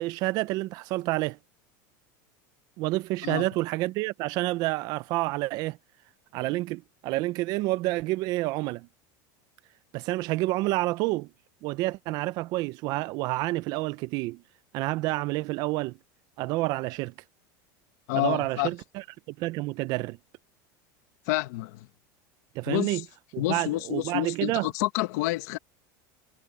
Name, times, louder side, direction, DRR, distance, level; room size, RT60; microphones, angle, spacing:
voice 1, 0.0-1.4 2.8-5.8 6.3-8.9 9.9-11.3 11.6-14.4 14.7-16.0 16.4-17.1 18.1-20.2 22.6-23.0 23.3-24.7, right 19 dB, 40° right, 0.5 m, -29 dB
voice 2, 18.1-18.7 21.3-21.9 22.7-23.0 23.4-25.6, left 19 dB, 60° left, 1.6 m, -29 dB
supercardioid pair, 165°, 10 cm